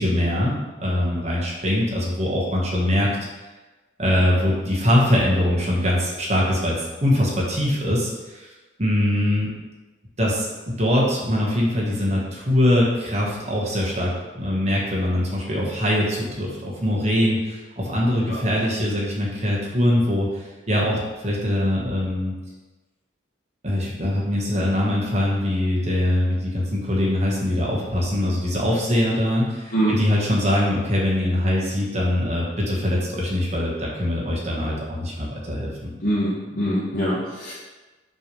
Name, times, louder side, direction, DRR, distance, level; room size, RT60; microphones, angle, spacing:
voice 1, 0.0-3.1 4.0-8.5 8.8-9.5 10.2-22.3 23.6-35.9, left 1 dB, 35° right, -4 dB, 1.4 m, -22 dB
voice 2, 36.0-37.5, right 1 dB, 50° left, -9 dB, 1.2 m, -23 dB
6.1 x 3.3 x 5.3 m, 1.2 s
head